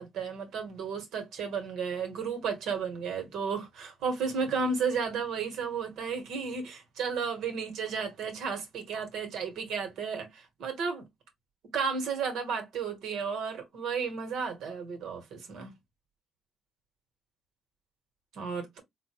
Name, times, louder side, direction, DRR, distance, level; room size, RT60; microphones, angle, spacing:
voice 1, 0.0-11.1 11.7-15.7 18.3-18.8, right 5 dB, 80° right, 1.6 m, -33 dB
4.2 x 2.6 x 2.9 m
cardioid pair, 90°, 0 cm